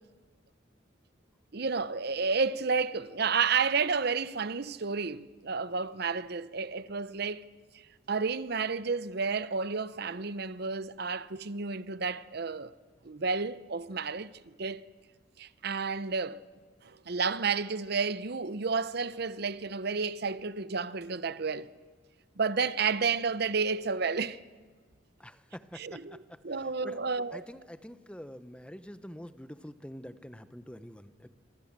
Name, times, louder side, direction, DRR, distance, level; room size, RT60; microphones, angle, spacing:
voice 1, 1.5-7.4 8.1-12.7 13.0-14.8 15.4-16.4 16.8-21.7 22.4-24.4 25.7-26.2 26.4-27.5, right 5 dB, 55° right, 0.8 m, -31 dB
voice 2, 25.2-27.0 27.3-31.3, equal, 5° left, 0.9 m, -46 dB
26.0 x 24.0 x 7.5 m
head